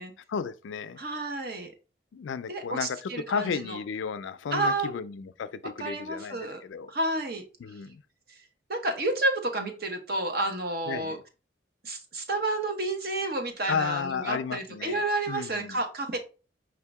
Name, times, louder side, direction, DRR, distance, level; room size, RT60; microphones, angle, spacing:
voice 1, 0.3-1.0 2.1-6.9 7.6-8.0 10.9-11.2 13.7-15.8, left 6 dB, 80° left, 0.4 m, -33 dB
voice 2, 1.0-1.7 2.5-3.8 4.5-4.9 5.8-6.6 6.9-7.4 8.7-11.2 11.8-16.2, right 2 dB, 55° right, 1.0 m, -30 dB
5.1 x 2.8 x 3.5 m
head